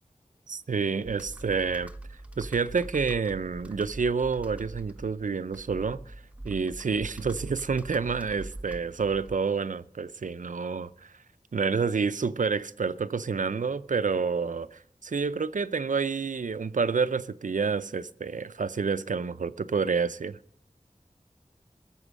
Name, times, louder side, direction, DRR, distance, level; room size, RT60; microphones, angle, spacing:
voice 1, 0.5-1.9 2.4-6.1 6.4-11.1 11.5-20.4, right 5 dB, 75° right, 0.5 m, -28 dB
Computer keyboard, 1.0-9.6, right 1 dB, 10° right, 0.9 m, -43 dB
21.0 x 7.2 x 6.2 m
wide cardioid pair, 60°, 13 cm